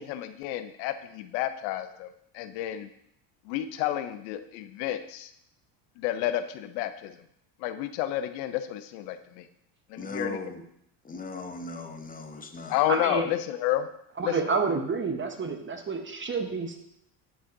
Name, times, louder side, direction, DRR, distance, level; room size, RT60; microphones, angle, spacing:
voice 1, 0.0-2.1 2.3-2.9 3.5-5.3 6.0-7.2 7.6-9.5 9.9-10.4 12.7-13.9 14.2-14.4, left 12 dB, 85° left, 11 dB, 0.7 m, -30 dB
voice 2, 10.0-10.6 11.0-12.8, left 2 dB, 15° left, 5 dB, 0.9 m, -38 dB
voice 3, 12.9-13.3 14.2-16.8, right 4 dB, 25° right, 5 dB, 0.9 m, -29 dB
10.0 x 5.6 x 2.6 m, 0.73 s
supercardioid pair, 95°, 49 cm